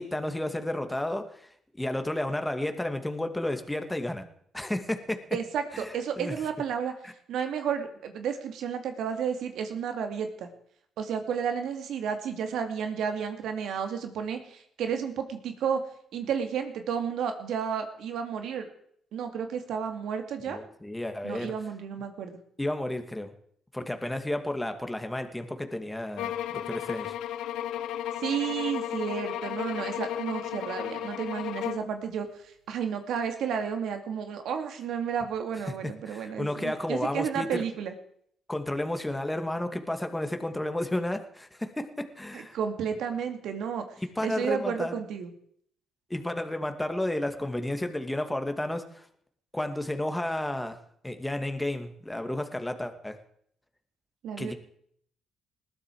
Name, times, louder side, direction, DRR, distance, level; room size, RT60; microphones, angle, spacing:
voice 1, 0.0-1.5 1.8-4.2 4.5-5.2 5.7-6.4 7.0-7.1 20.5-21.5 22.6-23.3 23.7-27.2 36.1-37.6 38.5-42.6 44.0-45.0 46.1-49.1 49.5-50.8 51.0-53.2 54.4-54.5, left 1 dB, 10° left, 7 dB, 2.1 m, -32 dB
voice 2, 5.3-6.9 7.3-10.5 11.0-15.8 16.1-18.7 19.1-20.6 21.2-22.4 28.2-32.3 32.7-37.9 42.3-43.8 44.2-45.3 54.2-54.5, right 7 dB, 80° right, 6 dB, 2.5 m, -32 dB
sound 1, 26.2-31.9, left 11 dB, 85° left, 1.0 m, -34 dB
20.0 x 14.0 x 4.8 m, 0.65 s
cardioid pair, 90°, 0 cm